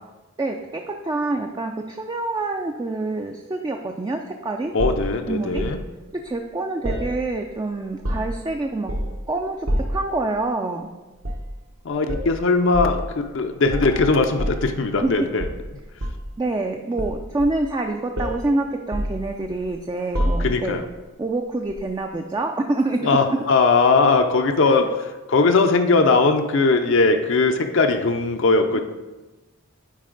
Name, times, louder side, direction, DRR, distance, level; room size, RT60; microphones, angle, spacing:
voice 1, 0.4-4.7 5.3-5.6 6.1-8.9 9.3-10.9 15.0-15.1 16.4-20.8 21.2-23.2 24.7-24.9, right 2 dB, 20° right, 3 dB, 0.3 m, -26 dB
voice 2, 4.7-5.8 11.8-15.5 20.4-20.8 23.0-28.8, left 3 dB, 60° left, 5 dB, 0.5 m, -19 dB
sound 1, 4.8-5.8 6.8-7.6 7.9-8.5 8.9-9.2 9.7-10.1 11.2-11.5 12.1-12.3 12.7-13.0 13.7-15.1 15.4-16.3 17.0-17.8 18.2-18.5 18.9-19.7 20.1-20.8 21.7-21.9, equal, 70° right, 1.0 m, -27 dB
9.5 x 4.1 x 3.8 m, 1.1 s
head